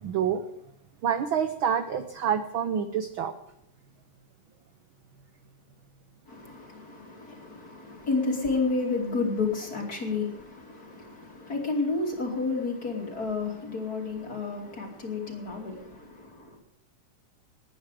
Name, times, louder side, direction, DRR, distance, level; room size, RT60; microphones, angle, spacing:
voice 1, 0.0-0.4 1.0-3.3, right 8 dB, 75° right, 1.1 m, -27 dB
voice 2, 6.3-16.6, left 3 dB, 30° left, 3.1 m, -31 dB
20.0 x 9.4 x 5.0 m
omnidirectional pair, 3.4 m